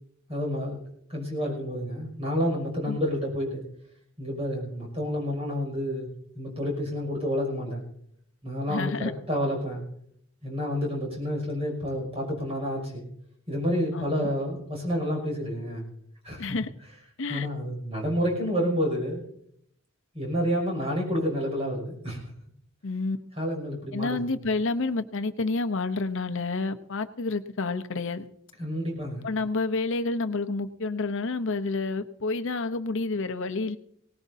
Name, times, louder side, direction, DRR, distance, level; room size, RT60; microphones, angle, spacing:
voice 1, 0.3-0.8 1.1-3.6 4.2-6.1 6.3-7.8 8.4-9.8 10.4-13.0 13.5-15.9 16.2-16.6 17.3-19.2 20.1-22.2 23.4-24.4 28.6-29.3, equal, 30° right, 0 dB, 6.1 m, -29 dB
voice 2, 8.7-9.1 13.9-14.3 16.4-16.7 17.2-17.5 22.8-23.2 23.9-28.3 29.2-33.8, left 3 dB, 65° left, 9 dB, 0.9 m, -29 dB
19.0 x 18.5 x 2.8 m, 0.70 s
head